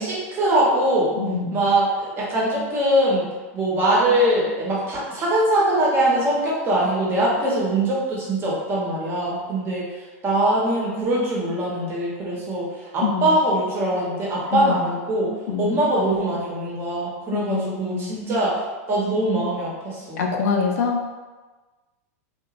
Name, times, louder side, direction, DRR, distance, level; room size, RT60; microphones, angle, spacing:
voice 1, 0.0-1.1 1.5-3.3 3.5-9.9 10.2-12.7 12.9-15.3 15.6-18.5 18.9-20.2, right 1 dB, 30° right, -5 dB, 0.9 m, -22 dB
voice 2, 1.2-1.6 13.0-13.3 14.5-14.8 15.5-15.8 17.3-18.1 20.2-21.1, left 5 dB, 75° left, 1 dB, 0.5 m, -25 dB
2.9 x 2.2 x 2.4 m, 1.3 s
supercardioid pair, 125°, 8 cm